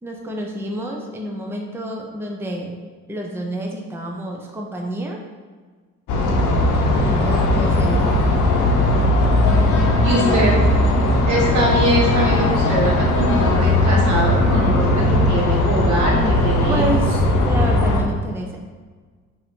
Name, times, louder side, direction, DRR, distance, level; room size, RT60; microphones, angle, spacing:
voice 1, 0.0-2.8 3.1-5.2 7.0-8.1 16.0-16.1 16.6-18.6, right 1 dB, 10° right, 0 dB, 0.6 m, -29 dB
sound 1, 6.1-18.0, left 1 dB, 85° left, 0.8 m, -18 dB
voice 2, 10.0-10.6 11.3-16.9, right 1 dB, 70° right, -2 dB, 1.4 m, -22 dB
5.2 x 2.8 x 3.6 m, 1.4 s
cardioid pair, 90°, 30 cm